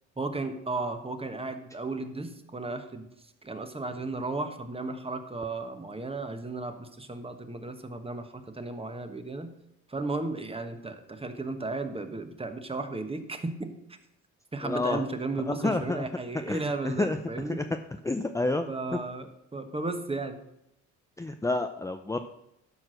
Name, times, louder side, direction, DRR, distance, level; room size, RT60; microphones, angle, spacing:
voice 1, 0.2-3.1 3.4-9.5 9.9-13.7 14.5-17.6 18.7-20.4, right 3 dB, 20° right, 8 dB, 1.3 m, -34 dB
voice 2, 14.6-15.1 15.4-16.0 16.5-17.2 17.5-17.6 18.0-19.0 21.2-22.2, left 2 dB, 10° left, 6 dB, 0.6 m, -29 dB
12.0 x 4.8 x 6.3 m, 0.83 s
cardioid pair, 90°, 30 cm